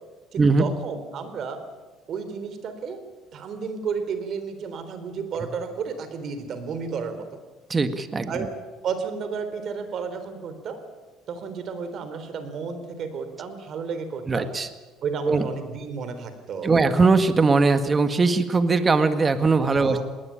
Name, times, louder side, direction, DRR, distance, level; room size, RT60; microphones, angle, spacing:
voice 1, 0.3-1.6 2.1-3.0 3.3-7.2 8.3-8.5 8.8-10.8 11.3-14.5 15.0-16.8 19.8-20.0, right 5 dB, 55° right, 9 dB, 3.7 m, -32 dB
voice 2, 7.7-8.3 14.3-14.7 15.3-15.4 16.6-20.0, right 4 dB, 25° right, 9 dB, 1.8 m, -20 dB
20.0 x 19.5 x 8.8 m, 1.3 s
cardioid pair, 105°, 0 cm